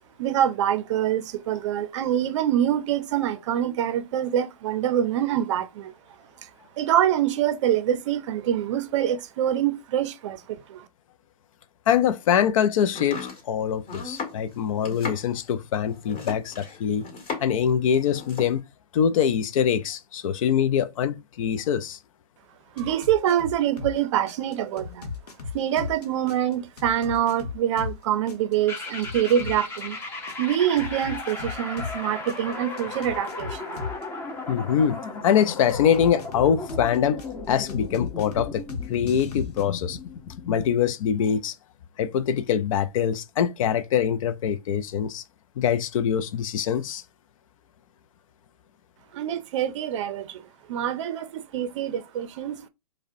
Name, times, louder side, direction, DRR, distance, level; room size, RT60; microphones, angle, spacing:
voice 1, 0.2-5.9 6.8-10.9 22.8-25.1 25.5-30.0 30.4-33.8 49.1-50.4 50.7-52.7, right 10 dB, 50° right, 0.5 m, -25 dB
voice 2, 11.9-17.0 17.4-18.6 18.9-22.0 34.5-37.2 37.5-38.6 38.9-40.0 40.5-41.5 42.0-45.2 45.6-47.0, left 8 dB, 60° left, 0.4 m, -24 dB
Domestic sounds home sounds, 12.9-17.7 17.9-18.6, left 4 dB, 35° left, 2.1 m, -36 dB
sound 1, 22.8-24.0 24.3-28.0 28.3-32.0 32.3-34.0 35.7-37.3 37.7-39.6, left 5 dB, 80° left, 0.9 m, -36 dB
sound 2, 28.7-40.7, left 3 dB, 10° left, 0.7 m, -36 dB
4.8 x 2.2 x 2.6 m
hypercardioid pair, 135°, 20 cm